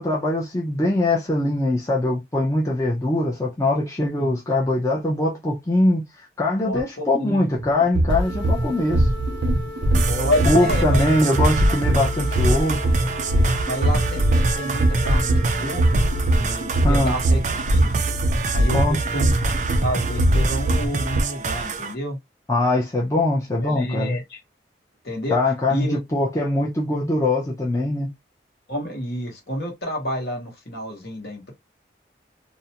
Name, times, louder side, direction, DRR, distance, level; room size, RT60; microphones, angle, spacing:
voice 1, 0.0-6.1 6.4-9.1 10.4-12.9 16.8-17.1 18.7-19.0 22.5-24.2 25.3-28.1, left 1 dB, 15° left, 0.5 m, -22 dB
voice 2, 6.7-7.4 10.1-11.1 13.7-15.9 16.3-18.0 18.5-19.3 19.8-22.2 23.6-24.4 25.0-25.4 25.7-26.0 28.7-31.5, equal, 60° left, 1.0 m, -29 dB
sound 1, 7.6-21.2, right 1 dB, 85° right, 0.6 m, -21 dB
sound 2, 8.1-16.6, left 2 dB, 85° left, 1.2 m, -38 dB
sound 3, 9.9-21.9, right 4 dB, 40° right, 0.3 m, -28 dB
2.5 x 2.1 x 2.8 m
head